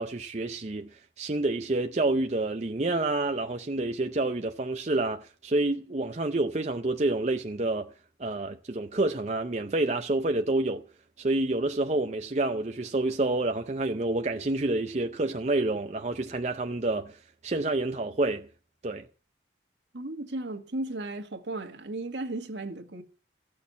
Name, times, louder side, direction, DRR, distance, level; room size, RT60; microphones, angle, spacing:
voice 1, 0.0-7.9 8.2-10.8 11.2-17.2 17.4-18.5 18.8-19.1, right 2 dB, 40° right, 0.6 m, -28 dB
voice 2, 19.9-23.0, right 2 dB, 75° right, 1.6 m, -35 dB
14.5 x 6.4 x 8.3 m
head